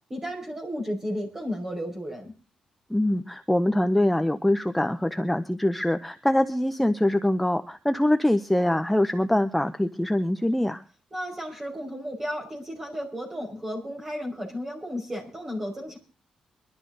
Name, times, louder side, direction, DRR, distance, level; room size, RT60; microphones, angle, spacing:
voice 1, 0.1-2.3 11.1-16.0, equal, 20° right, 0 dB, 5.5 m, -33 dB
voice 2, 2.9-10.8, left 1 dB, 5° left, 9 dB, 0.6 m, -24 dB
23.0 x 12.5 x 3.9 m, 0.34 s
wide cardioid pair, 155°, 2 cm